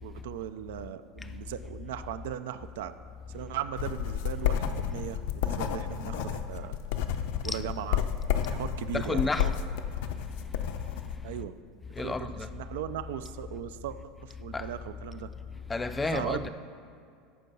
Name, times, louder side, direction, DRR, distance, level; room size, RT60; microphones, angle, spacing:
voice 1, 0.0-2.9 3.3-6.7 7.4-8.0 8.4-9.6 11.2-11.5 12.0-15.3 16.1-16.5, right 10 dB, 90° right, 0.4 m, -38 dB
sound 1, 3.7-11.2, left 9 dB, 75° left, 0.5 m, -31 dB
voice 2, 8.9-9.5 12.0-12.5 14.5-14.7 15.7-16.4, left 3 dB, 15° left, 0.4 m, -30 dB
13.5 x 4.6 x 5.4 m
supercardioid pair, 135°, 0 cm